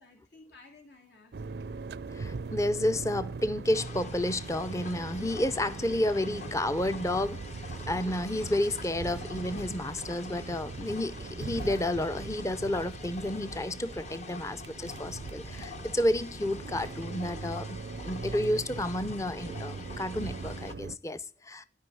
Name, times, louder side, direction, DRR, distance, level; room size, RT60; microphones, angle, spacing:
voice 1, 0.0-2.0 2.4-2.6, left 2 dB, 75° left, 2.4 m, -56 dB
sound 1, 1.3-21.0, right 4 dB, 65° right, 0.5 m, -41 dB
voice 2, 2.1-7.5 7.9-21.6, left 1 dB, 20° left, 0.6 m, -31 dB
sound 2, 3.7-20.7, left 3 dB, 40° left, 1.0 m, -45 dB
13.0 x 5.4 x 7.7 m
head